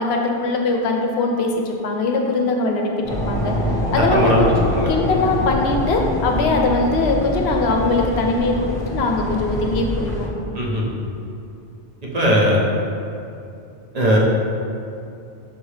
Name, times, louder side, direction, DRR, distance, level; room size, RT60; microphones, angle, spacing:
voice 1, 0.0-3.5 3.9-4.5 4.9-8.6 8.8-10.3, left 3 dB, 70° left, 2 dB, 0.8 m, -21 dB
sound 1, 3.0-10.3, left 1 dB, 5° left, 0.6 m, -25 dB
voice 2, 4.0-4.9 10.5-11.1 12.0-12.6 13.9-14.2, equal, 45° right, -4 dB, 0.7 m, -19 dB
5.4 x 2.7 x 3.2 m, 2.6 s
omnidirectional pair, 1.1 m